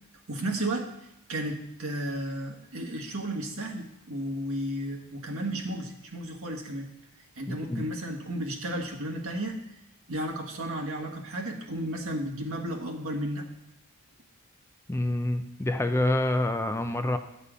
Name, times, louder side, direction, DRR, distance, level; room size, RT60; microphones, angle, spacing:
voice 1, 0.3-0.9 1.3-6.9 7.3-9.6 10.1-13.5, right 1 dB, 70° right, 2 dB, 1.4 m, -33 dB
voice 2, 7.5-7.8 14.9-17.2, left 1 dB, 10° left, 8 dB, 0.4 m, -27 dB
9.7 x 6.9 x 5.0 m, 0.83 s
head